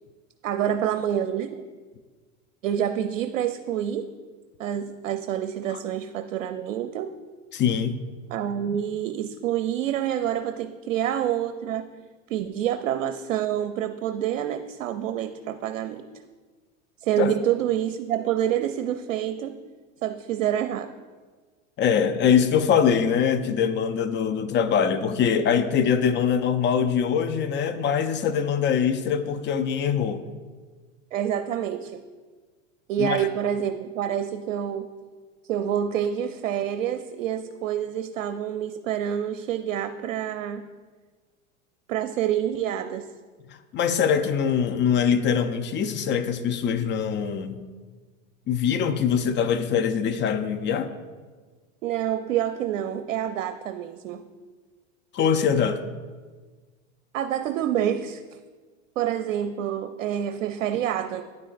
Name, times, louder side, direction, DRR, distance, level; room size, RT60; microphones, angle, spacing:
voice 1, 0.4-1.6 2.6-4.1 4.6-7.1 8.3-11.9 12.3-16.0 17.0-19.6 20.0-20.9 31.1-32.0 32.9-34.9 35.5-40.7 41.9-43.1 51.8-54.2 57.1-58.2 59.0-61.2, right 10 dB, 85° right, 9 dB, 0.5 m, -27 dB
voice 2, 7.5-8.0 17.2-17.3 21.8-30.2 33.0-33.3 43.5-47.6 48.5-50.9 55.1-55.8, left 7 dB, 30° left, 10 dB, 0.5 m, -23 dB
9.5 x 8.7 x 2.5 m, 1.4 s
hypercardioid pair, 105°, 39 cm